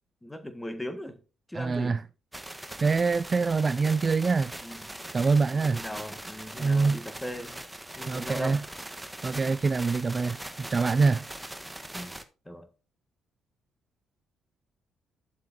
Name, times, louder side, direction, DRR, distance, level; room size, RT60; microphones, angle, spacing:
voice 1, 0.2-1.2 1.5-2.0 4.6-4.9 5.5-7.6 7.9-8.6 11.9-12.1 12.4-12.7, equal, 10° left, 1.6 m, -39 dB
voice 2, 1.5-2.0 2.8-4.5 5.1-5.8 6.6-7.0 8.1-8.6 9.2-10.4 10.7-11.3, right 4 dB, 40° right, 0.3 m, -25 dB
sound 1, 2.3-12.2, right 1 dB, 10° right, 1.1 m, -41 dB
11.0 x 7.6 x 2.7 m
hypercardioid pair, 45°, 0 cm